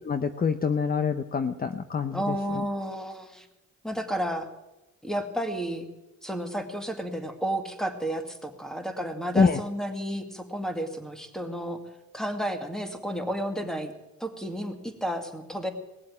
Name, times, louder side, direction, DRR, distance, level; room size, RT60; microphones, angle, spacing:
voice 1, 0.0-2.6 9.3-9.6, left 5 dB, 30° left, 9 dB, 0.8 m, -26 dB
voice 2, 2.1-3.5 3.8-4.5 5.0-5.9 6.2-11.8 12.1-13.9 14.2-15.7, right 1 dB, ahead, 6 dB, 2.3 m, -32 dB
19.0 x 7.6 x 8.6 m, 1.0 s
cardioid pair, 90°, 30 cm